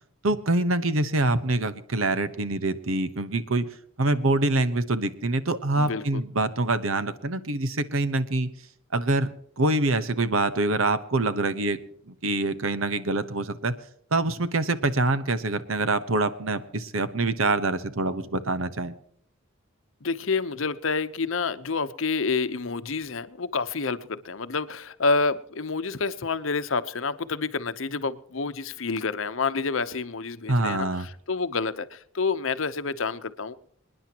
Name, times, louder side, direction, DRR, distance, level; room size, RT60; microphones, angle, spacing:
voice 1, 0.2-3.7 4.0-8.5 8.9-9.3 9.6-11.8 12.1-13.8 14.1-18.9 30.5-31.1, right 2 dB, 80° right, 13 dB, 1.0 m, -25 dB
voice 2, 5.7-6.2 20.0-33.5, left 4 dB, 70° left, 12 dB, 0.8 m, -28 dB
27.0 x 10.0 x 2.9 m, 0.67 s
head